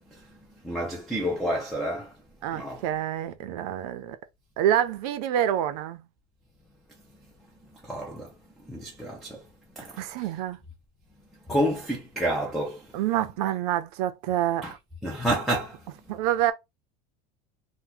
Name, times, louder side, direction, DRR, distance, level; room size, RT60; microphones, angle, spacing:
voice 1, 0.6-2.1 2.5-2.8 7.8-8.3 8.7-9.4 9.8-9.9 11.5-12.9 14.6-14.7 15.0-15.8, right 1 dB, ahead, 0.4 m, -29 dB
voice 2, 2.4-4.2 4.6-6.0 10.0-10.6 12.9-14.8 16.1-16.5, right 11 dB, 70° right, 0.5 m, -27 dB
2.7 x 2.2 x 3.8 m
cardioid pair, 170°, 21 cm